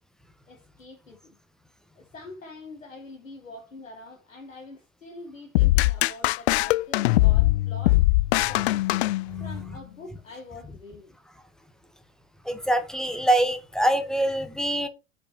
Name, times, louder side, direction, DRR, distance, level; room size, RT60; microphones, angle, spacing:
voice 1, 0.5-1.4 2.0-8.0 8.5-8.9 9.4-11.2, left 2 dB, 85° left, 1.3 m, -44 dB
sound 1, 5.6-9.7, left 19 dB, 60° left, 0.5 m, -21 dB
voice 2, 12.4-14.9, right 1 dB, ahead, 1.2 m, -24 dB
6.9 x 5.0 x 4.4 m
figure-of-eight pair, 80°, 38 cm